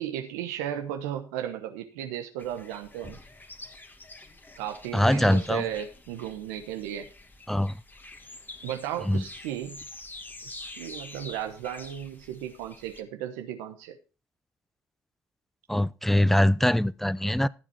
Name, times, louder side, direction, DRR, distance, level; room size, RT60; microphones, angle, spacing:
voice 1, 0.0-3.2 4.6-7.1 8.6-9.8 10.4-14.0, right 10 dB, 85° right, 1.1 m, -35 dB
sound 1, 2.4-13.0, left 2 dB, 20° left, 2.2 m, -46 dB
voice 2, 4.9-5.6 7.5-7.8 9.1-9.2 15.7-17.5, left 1 dB, 5° left, 0.7 m, -23 dB
14.5 x 7.5 x 4.5 m
hypercardioid pair, 55°, 9 cm